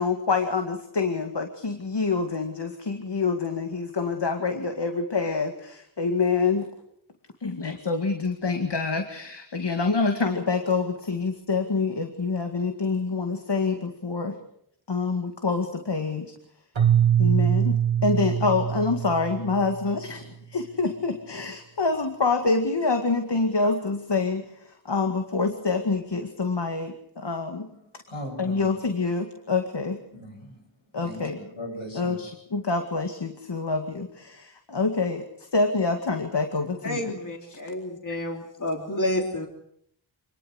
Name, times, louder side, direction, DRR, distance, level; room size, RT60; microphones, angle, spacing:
voice 1, 0.0-6.7 7.4-14.3 14.9-16.3 17.2-24.4 24.9-27.7 28.4-30.0 30.9-31.4 32.0-35.2 35.5-37.1, left 4 dB, 60° left, 5 dB, 2.2 m, -26 dB
Keyboard (musical), 16.8-19.9, right 9 dB, 85° right, 1.9 m, -23 dB
voice 2, 27.7-28.7 30.1-30.6 30.9-32.3, equal, 85° left, 1 dB, 7.8 m, -39 dB
voice 3, 36.8-39.5, left 1 dB, 40° left, 2 dB, 3.3 m, -29 dB
26.0 x 20.5 x 6.5 m, 0.68 s
wide cardioid pair, 75°, 46 cm